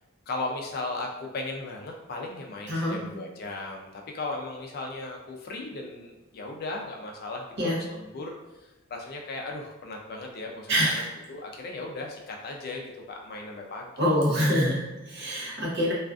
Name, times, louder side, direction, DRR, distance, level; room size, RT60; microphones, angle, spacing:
voice 1, 0.3-8.4 8.9-12.8 13.1-13.9, left 2 dB, 45° left, 1 dB, 0.4 m, -36 dB
voice 2, 2.7-3.0 7.6-7.8 10.7-11.1 14.0-15.9, equal, 55° right, -4 dB, 0.7 m, -25 dB
2.4 x 2.3 x 2.3 m, 1.1 s
head